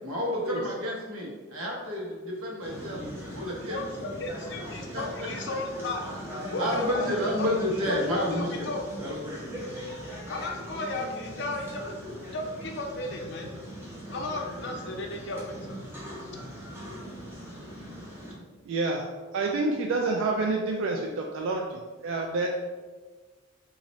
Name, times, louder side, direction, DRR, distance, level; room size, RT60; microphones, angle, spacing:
voice 1, 0.0-3.0 3.3-3.8 4.9-5.0 6.6-8.7 9.0-9.5, left 1 dB, 80° right, -3 dB, 1.0 m, -30 dB
sound 1, 2.6-18.3, equal, 10° right, 0.9 m, -40 dB
voice 2, 3.7-6.0 6.5-7.1 7.4-7.5 7.9-8.8 10.3-13.7 14.1-16.0 16.3-16.5, left 2 dB, 55° left, 2 dB, 0.5 m, -35 dB
voice 3, 18.7-19.0 19.3-22.5, right 3 dB, 65° right, 1 dB, 0.3 m, -28 dB
4.1 x 2.5 x 3.0 m, 1.3 s
head